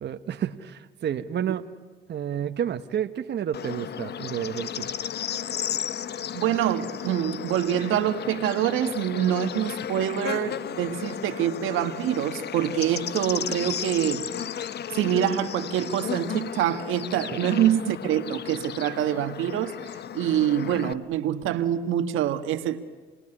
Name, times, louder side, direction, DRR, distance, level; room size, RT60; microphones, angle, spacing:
voice 1, 0.0-1.6 2.1-4.9, right 9 dB, 60° right, 7 dB, 1.2 m, -30 dB
Bird / Insect, 3.5-20.9, left 9 dB, 55° left, 0.8 m, -34 dB
voice 2, 6.3-14.3 14.9-19.8 20.1-22.8, right 10 dB, 90° right, 8 dB, 1.5 m, -25 dB
29.0 x 20.0 x 9.9 m, 1.4 s
cardioid pair, 90°, 20 cm